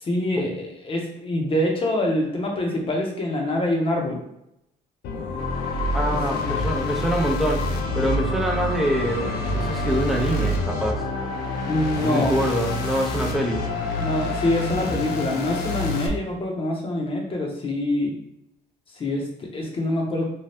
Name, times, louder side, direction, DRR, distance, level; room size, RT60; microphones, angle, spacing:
voice 1, 0.0-4.2 6.1-6.4 11.7-12.4 14.0-18.1 18.9-20.3, left 1 dB, 35° left, 1 dB, 0.8 m, -25 dB
sound 1, 5.0-16.1, left 2 dB, 70° left, 0.5 m, -27 dB
voice 2, 5.9-7.6 7.9-11.1 12.0-13.6, equal, ahead, 1 dB, 0.5 m, -25 dB
2.7 x 2.3 x 3.3 m, 0.80 s
cardioid pair, 110°, 17 cm